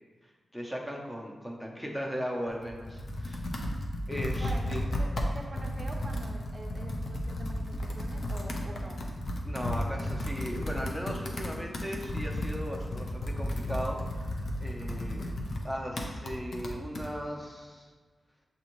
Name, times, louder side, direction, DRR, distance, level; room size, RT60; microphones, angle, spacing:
voice 1, 0.2-3.4 4.1-4.9 9.4-15.3 15.6-17.9, equal, 5° left, -1 dB, 0.7 m, -37 dB
Computer keyboard, 2.5-17.1, left 1 dB, 60° left, 0.6 m, -34 dB
voice 2, 4.4-9.0, right 1 dB, 30° right, 1 dB, 0.6 m, -44 dB
6.7 x 2.6 x 3.0 m, 1.4 s
wide cardioid pair, 100°, 0 cm